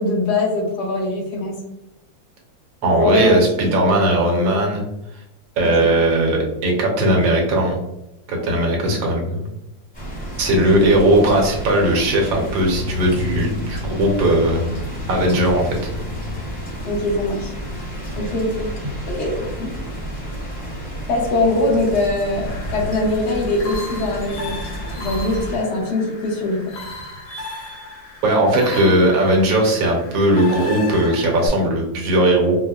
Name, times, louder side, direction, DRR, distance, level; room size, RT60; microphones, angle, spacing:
voice 1, 0.0-1.6 3.0-3.4 10.5-10.9 16.8-17.5 18.2-18.7 19.1-19.7 21.1-24.6 25.0-26.6, left 2 dB, 65° left, -2 dB, 1.3 m, -22 dB
voice 2, 2.8-4.8 5.6-7.8 8.3-9.5 10.4-14.6 15.1-15.7 28.2-32.6, right 1 dB, 75° right, 0 dB, 1.5 m, -18 dB
sound 1, 9.9-25.6, right 1 dB, 5° left, 0.9 m, -31 dB
sound 2, 12.1-22.9 23.2-23.3, left 4 dB, 55° right, 1.1 m, -34 dB
sound 3, 22.5-31.5, left 2 dB, 90° left, 1.8 m, -35 dB
4.0 x 2.1 x 2.3 m, 0.90 s
omnidirectional pair, 2.1 m